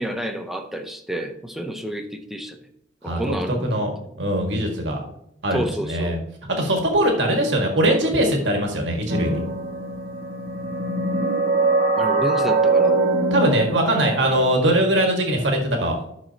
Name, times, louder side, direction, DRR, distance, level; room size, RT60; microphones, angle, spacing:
voice 1, 0.0-2.6 3.0-4.1 5.5-6.2 7.9-8.2 12.0-13.0, right 1 dB, ahead, 5 dB, 0.7 m, -30 dB
voice 2, 4.2-5.0 5.4-6.2 6.5-9.4 13.3-16.1, right 1 dB, 80° right, 2 dB, 1.9 m, -21 dB
sound 1, 9.1-14.5, right 3 dB, 55° right, 1.8 m, -22 dB
12.5 x 6.3 x 2.9 m, 0.76 s
head